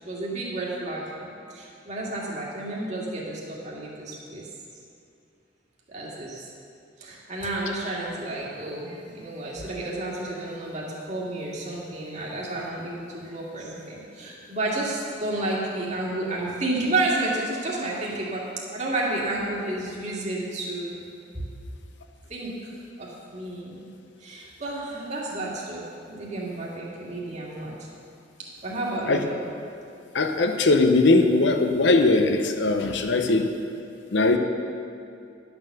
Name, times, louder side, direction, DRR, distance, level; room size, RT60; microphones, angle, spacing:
voice 1, 0.0-4.4 5.9-6.5 7.0-18.4 18.7-21.0 21.3-21.4 22.3-22.7 23.0-23.8 24.2-27.7 28.6-29.5, right 2 dB, 40° right, -5 dB, 2.0 m, -31 dB
voice 2, 30.1-33.5 34.1-34.4, left 2 dB, 75° left, 5 dB, 0.8 m, -20 dB
11.0 x 7.0 x 6.7 m, 2.5 s
head